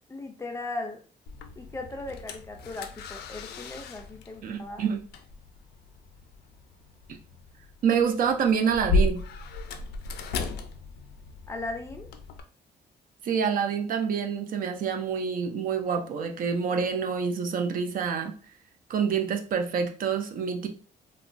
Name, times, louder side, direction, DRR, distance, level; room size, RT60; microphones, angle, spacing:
voice 1, 0.1-1.0 1.6-4.9 11.5-12.1, left 2 dB, 15° left, 4 dB, 0.4 m, -37 dB
sound 1, 1.3-12.4, left 3 dB, 85° left, 0.4 m, -34 dB
voice 2, 4.4-5.0 7.1-7.2 7.8-9.2 13.2-18.3 18.9-20.7, right 6 dB, 60° right, 5 dB, 0.5 m, -27 dB
2.9 x 2.2 x 2.5 m, 0.40 s
cardioid pair, 135°, 16 cm